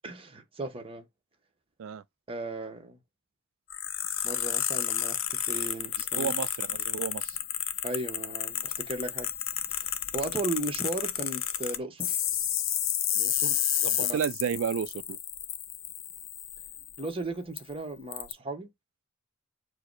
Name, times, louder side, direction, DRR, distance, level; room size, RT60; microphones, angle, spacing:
voice 1, 0.0-1.0 2.3-3.0 4.2-6.3 7.8-9.3 9.7-12.2 14.0-14.2 17.0-18.7, right 2 dB, 25° right, 0.9 m, -36 dB
sound 1, 3.7-17.1 17.6-17.7 18.1-18.3, left 11 dB, 65° left, 0.5 m, -31 dB
voice 2, 6.2-7.4 13.2-15.2, right 7 dB, 75° right, 0.3 m, -33 dB
4.7 x 2.0 x 4.5 m
head